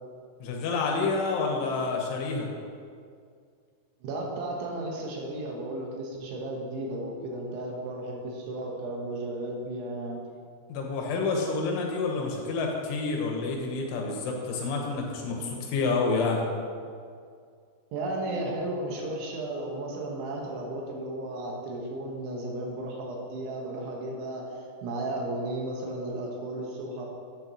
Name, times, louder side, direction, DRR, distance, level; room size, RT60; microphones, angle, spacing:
voice 1, 0.4-2.5 10.7-16.4, left 4 dB, 90° left, 0 dB, 3.7 m, -28 dB
voice 2, 4.0-10.2 17.9-24.5 24.8-27.1, right 1 dB, 85° right, -1 dB, 3.7 m, -34 dB
11.0 x 9.2 x 3.0 m, 2.2 s
omnidirectional pair, 5.3 m